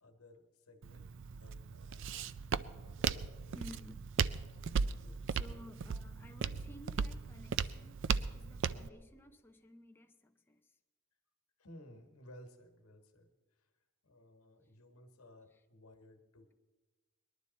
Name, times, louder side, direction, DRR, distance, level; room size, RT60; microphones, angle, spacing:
voice 1, 0.0-2.3 2.6-3.7 4.6-5.6 11.6-13.3 14.0-16.5, left 1 dB, 90° left, 1.5 m, -59 dB
Walk footsteps, 0.8-8.9, right 6 dB, 55° right, 0.4 m, -37 dB
voice 2, 3.5-4.4 5.3-8.0 8.3-10.6, left 1 dB, 10° left, 0.6 m, -55 dB
20.0 x 11.5 x 4.1 m
head